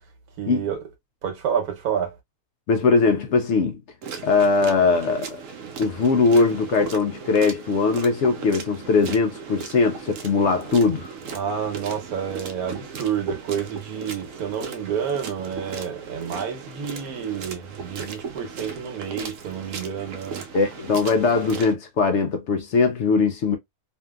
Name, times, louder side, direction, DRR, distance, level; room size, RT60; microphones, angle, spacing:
voice 1, 0.4-0.8 1.2-2.1 11.3-20.5, right 8 dB, 90° right, 1.3 m, -29 dB
voice 2, 2.7-3.8 4.2-5.4 5.8-11.1 20.5-23.6, left 4 dB, 65° left, 0.7 m, -20 dB
sound 1, 4.0-21.7, right 6 dB, 65° right, 0.9 m, -37 dB
2.7 x 2.5 x 2.2 m
omnidirectional pair, 1.6 m